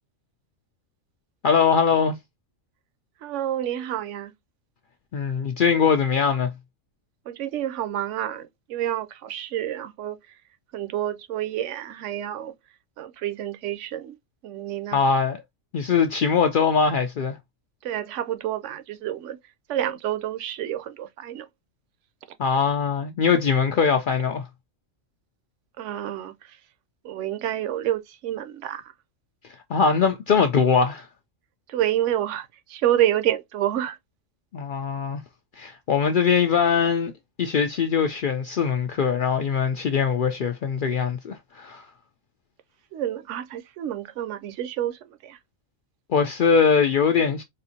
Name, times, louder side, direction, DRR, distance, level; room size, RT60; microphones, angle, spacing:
voice 1, 1.4-2.1 5.1-6.5 14.9-15.4 15.7-17.4 22.4-24.5 29.7-31.1 34.5-35.2 35.6-37.1 37.4-41.9 46.1-47.4, left 6 dB, 85° left, 0.4 m, -21 dB
voice 2, 3.2-4.3 7.3-10.2 10.7-12.5 13.0-14.2 14.4-15.0 17.8-19.4 19.7-21.5 25.8-26.3 27.0-28.8 31.7-34.0 42.9-45.4, right 12 dB, 70° right, 0.9 m, -28 dB
4.2 x 2.6 x 2.7 m
omnidirectional pair, 1.4 m